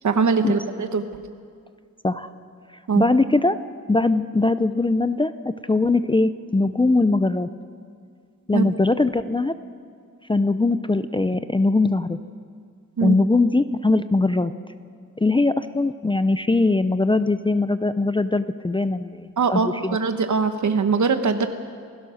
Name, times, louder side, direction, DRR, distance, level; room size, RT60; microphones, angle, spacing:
voice 1, 0.0-1.0 2.9-3.1 8.5-8.7 13.0-13.2 19.4-21.5, right 5 dB, 65° right, 8 dB, 1.2 m, -22 dB
voice 2, 3.0-3.6 3.9-5.3 5.7-7.5 8.5-9.5 10.3-12.2 13.0-14.5 15.2-20.0, left 2 dB, 15° left, 12 dB, 0.4 m, -21 dB
28.0 x 16.0 x 6.4 m, 2.2 s
wide cardioid pair, 160°, 32 cm